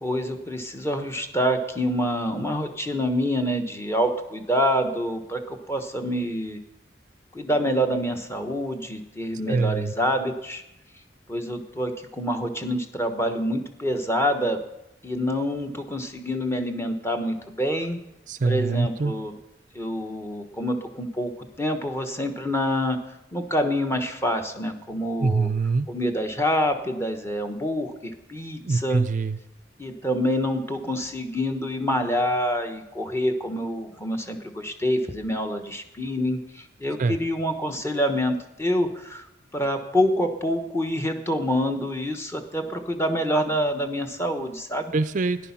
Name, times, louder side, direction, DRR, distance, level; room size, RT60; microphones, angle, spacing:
voice 1, 0.0-6.6 7.3-10.6 11.3-14.6 15.0-18.0 18.4-19.3 19.7-21.3 21.6-23.0 23.3-25.5 25.9-29.0 29.8-39.3 39.5-44.9, equal, 15° left, 5 dB, 1.1 m, -26 dB
voice 2, 9.5-9.9 18.3-19.1 25.2-25.9 28.7-29.4 37.0-37.2 44.9-45.4, right 4 dB, 45° right, 12 dB, 0.5 m, -24 dB
14.0 x 10.5 x 5.8 m, 0.89 s
head